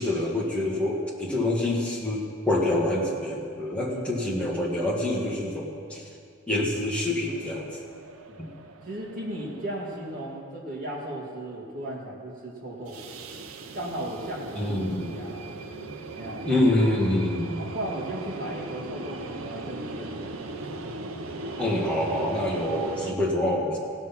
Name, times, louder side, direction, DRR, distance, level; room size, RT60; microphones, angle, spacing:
voice 1, 0.0-6.0 6.5-7.7 8.4-8.5 14.5-15.1 16.4-17.6 21.6-23.8, left 1 dB, 5° left, -4 dB, 1.5 m, -26 dB
sound 1, 7.3-10.4 12.7-23.1, right 2 dB, 85° right, 0.7 m, -38 dB
voice 2, 8.9-13.0 13.7-15.5 16.1-16.5 17.6-20.5 22.5-22.8, right 1 dB, 40° right, -4 dB, 2.2 m, -36 dB
16.5 x 6.1 x 5.8 m, 2.3 s
head